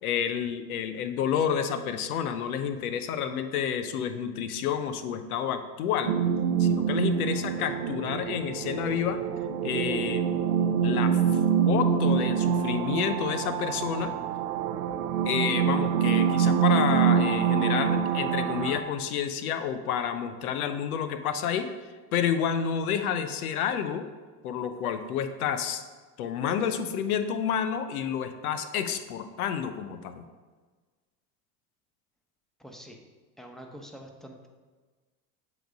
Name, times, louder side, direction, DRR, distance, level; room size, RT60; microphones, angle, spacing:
voice 1, 0.0-6.2 6.6-9.2 9.6-10.3 10.8-11.4 11.7-14.1 15.2-24.1 24.4-25.8 26.2-30.2, left 8 dB, 90° left, 9 dB, 0.7 m, -29 dB
sound 1, 6.1-18.8, right 7 dB, 90° right, 0.5 m, -25 dB
voice 2, 32.6-33.0 33.4-34.5, equal, ahead, 2 dB, 0.9 m, -45 dB
7.8 x 3.2 x 5.1 m, 1.4 s
hypercardioid pair, 80°, 42 cm